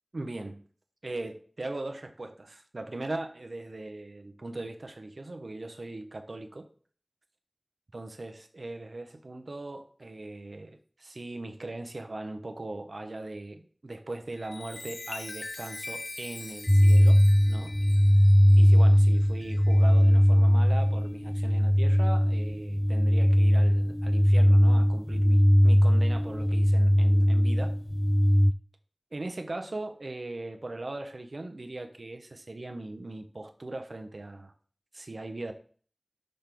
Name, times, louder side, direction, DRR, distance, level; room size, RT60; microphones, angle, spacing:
voice 1, 0.1-0.6 1.0-6.7 7.9-17.2 17.5-17.7 18.6-27.7 29.1-34.5 34.9-35.5, right 2 dB, 90° right, 0.8 m, -39 dB
Chime, 14.3-20.2 20.8-21.1, left 2 dB, 85° left, 0.4 m, -43 dB
sound 1, 16.7-28.5, equal, 10° left, 0.3 m, -20 dB
6.4 x 3.5 x 5.9 m
wide cardioid pair, 45°, 0 cm